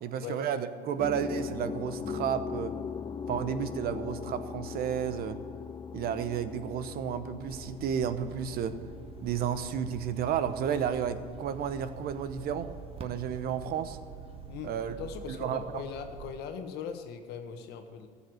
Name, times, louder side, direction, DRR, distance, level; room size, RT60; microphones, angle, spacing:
voice 1, 0.0-2.7 3.3-5.4 5.9-8.8 9.2-12.7 13.0-14.0 14.6-14.9 15.3-15.8, right 8 dB, 60° right, 11 dB, 1.0 m, -32 dB
sound 1, 1.0-14.5, left 6 dB, 25° left, 0.6 m, -41 dB
sound 2, 7.4-16.3, right 7 dB, 35° right, 1.4 m, -47 dB
voice 2, 14.5-18.1, left 7 dB, 65° left, 7 dB, 1.4 m, -40 dB
14.0 x 7.2 x 7.9 m, 2.2 s
supercardioid pair, 80°, 18 cm